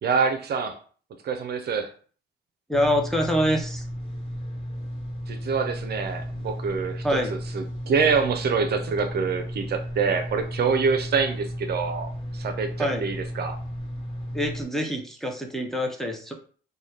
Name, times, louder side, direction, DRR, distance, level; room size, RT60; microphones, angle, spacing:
voice 1, 0.0-0.8 1.2-1.9 5.3-13.6, right 5 dB, 55° right, 6 dB, 0.5 m, -26 dB
sound 1, 2.7-14.6, equal, 30° left, 1.3 m, -34 dB
voice 2, 2.7-3.8 7.0-7.3 12.8-13.0 14.3-16.3, equal, ahead, 1 dB, 0.5 m, -25 dB
2.7 x 2.2 x 3.3 m, 0.43 s
cardioid pair, 90°, 20 cm